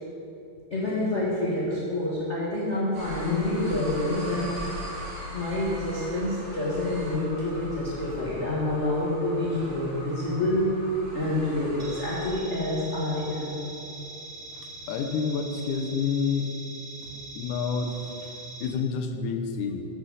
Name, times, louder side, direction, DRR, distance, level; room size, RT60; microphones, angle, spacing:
voice 1, 0.7-4.6 5.3-10.8 11.1-13.5, left 1 dB, 55° left, -7 dB, 0.8 m, -27 dB
sound 1, 2.9-12.3, equal, 60° right, 3.4 m, -39 dB
sound 2, 11.8-18.7, right 3 dB, 40° right, 1.3 m, -42 dB
voice 2, 14.5-16.5 17.4-19.9, left 5 dB, 80° left, 5 dB, 2.2 m, -29 dB
9.5 x 7.1 x 5.5 m, 2.8 s
omnidirectional pair, 3.7 m